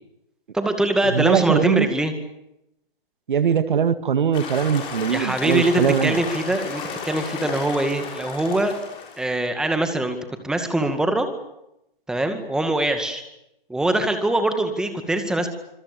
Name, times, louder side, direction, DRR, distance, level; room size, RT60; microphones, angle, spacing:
voice 1, 0.5-2.1 5.1-8.8 9.2-10.2 10.4-11.3 12.1-13.2 13.7-15.5, right 1 dB, ahead, 7 dB, 2.1 m, -23 dB
voice 2, 1.1-1.9 3.3-6.2, right 7 dB, 60° right, 12 dB, 2.0 m, -21 dB
sound 1, 4.3-9.4, left 5 dB, 20° left, 6.4 m, -33 dB
26.5 x 25.5 x 6.9 m, 0.83 s
hypercardioid pair, 155°, 29 cm